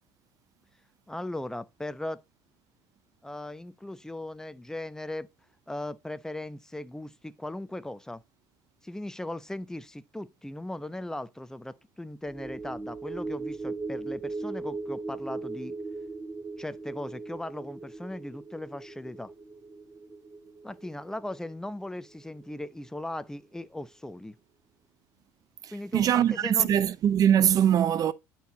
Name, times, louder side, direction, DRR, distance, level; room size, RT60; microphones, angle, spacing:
voice 1, 1.1-2.2 3.2-5.3 5.7-8.2 8.8-15.7 16.6-19.3 20.6-24.4 25.7-26.7, left 1 dB, 5° left, 0.7 m, -38 dB
sound 1, 12.3-22.9 23.2-23.4, right 3 dB, 20° right, 1.7 m, -39 dB
voice 2, 25.6-28.1, right 9 dB, 45° right, 0.6 m, -22 dB
10.0 x 4.6 x 3.9 m
supercardioid pair, 95°, 9 cm